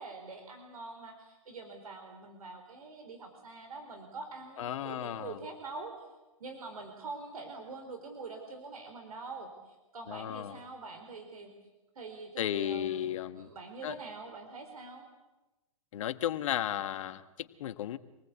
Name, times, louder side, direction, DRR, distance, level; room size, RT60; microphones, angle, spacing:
voice 1, 0.0-6.0 6.4-11.5 11.9-15.1, right 3 dB, 85° right, 5 dB, 4.5 m, -45 dB
voice 2, 4.6-5.4 10.1-10.6 12.4-13.5 13.8-13.9 15.9-18.0, left 11 dB, 60° left, 10 dB, 1.5 m, -34 dB
26.5 x 19.0 x 8.3 m, 1.1 s
hypercardioid pair, 130°, 18 cm